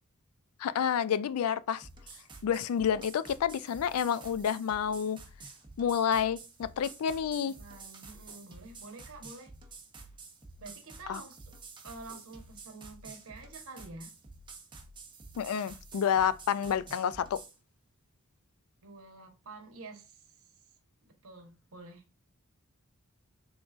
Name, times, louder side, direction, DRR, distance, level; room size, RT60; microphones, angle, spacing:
voice 1, 0.6-1.9 2.4-5.2 5.8-7.5 11.1-11.2 15.4-17.4, left 8 dB, 85° left, 0.3 m, -29 dB
sound 1, 1.7-17.6, right 3 dB, 20° right, 0.8 m, -50 dB
voice 2, 7.4-9.5 10.6-11.5 11.8-14.1 18.8-20.3 21.0-22.0, right 3 dB, 75° right, 1.1 m, -48 dB
3.8 x 3.7 x 2.4 m
head